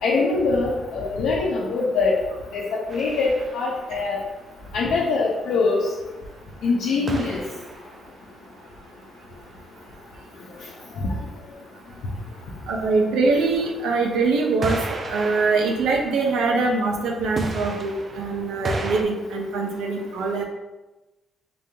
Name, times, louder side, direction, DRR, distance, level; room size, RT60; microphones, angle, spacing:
voice 1, 0.0-2.1 2.5-2.6 2.9-4.2 4.7-5.9 6.6-7.4, left 3 dB, 85° left, -5 dB, 0.7 m, -23 dB
sound 1, 2.9-3.9 7.1-8.2 14.6-16.9 17.4-19.0, right 2 dB, 40° right, 0.5 m, -33 dB
voice 2, 12.7-20.4, right 3 dB, 85° right, 1 dB, 0.6 m, -23 dB
3.9 x 3.7 x 2.8 m, 1.1 s
cardioid pair, 90°, 0 cm